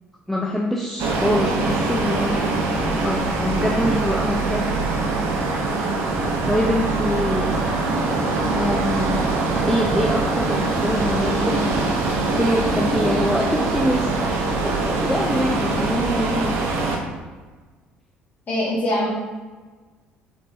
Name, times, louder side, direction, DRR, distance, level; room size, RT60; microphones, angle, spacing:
voice 1, 0.3-4.8 6.5-7.5 8.5-9.3 9.7-11.9 12.3-14.1 14.6-16.6, equal, 5° left, -2 dB, 0.5 m, -24 dB
sound 1, 1.0-17.0, right 3 dB, 55° right, 0.8 m, -23 dB
voice 2, 18.5-19.1, left 1 dB, 35° left, -8 dB, 1.2 m, -22 dB
5.1 x 3.4 x 2.6 m, 1.4 s
figure-of-eight pair, 50°, 5 cm